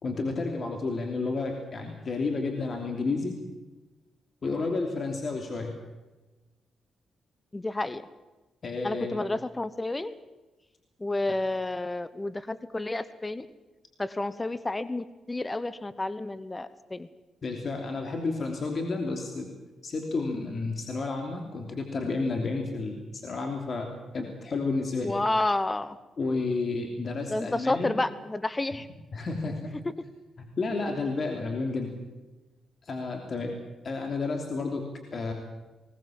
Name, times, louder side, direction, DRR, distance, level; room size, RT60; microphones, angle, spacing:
voice 1, 0.0-3.4 4.4-5.7 8.6-9.2 17.4-19.5 19.8-23.9 24.1-25.1 26.2-27.9 29.1-29.7 30.6-31.9 32.8-33.5 33.8-34.8 35.1-35.3, left 3 dB, 50° left, 3 dB, 3.0 m, -31 dB
voice 2, 7.5-8.0 8.8-10.1 11.0-13.5 14.0-17.1 25.0-26.0 27.3-28.9, left 2 dB, 20° left, 15 dB, 1.0 m, -30 dB
20.5 x 18.5 x 7.6 m, 1.1 s
cardioid pair, 80°, 0 cm